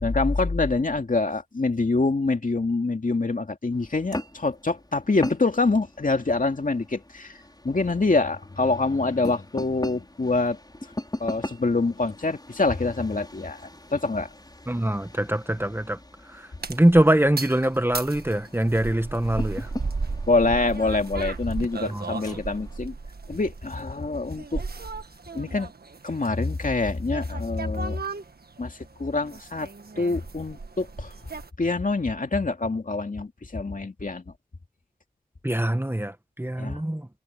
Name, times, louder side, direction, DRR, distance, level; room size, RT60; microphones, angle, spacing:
voice 1, 0.0-10.6 11.2-14.3 20.3-22.9 23.3-24.6 25.3-25.7 26.0-28.0 28.6-29.7 30.0-31.1 31.6-34.3 36.6-36.8, left 3 dB, 55° left, 2.4 m, -25 dB
sound 1, 3.7-22.8, left 1 dB, 25° left, 5.7 m, -40 dB
voice 2, 14.7-16.0 16.3-19.7 21.9-22.1 35.4-37.1, right 1 dB, 15° right, 1.4 m, -23 dB
sound 2, 16.6-31.5, right 4 dB, 70° right, 1.6 m, -36 dB
cardioid pair, 45°, 16 cm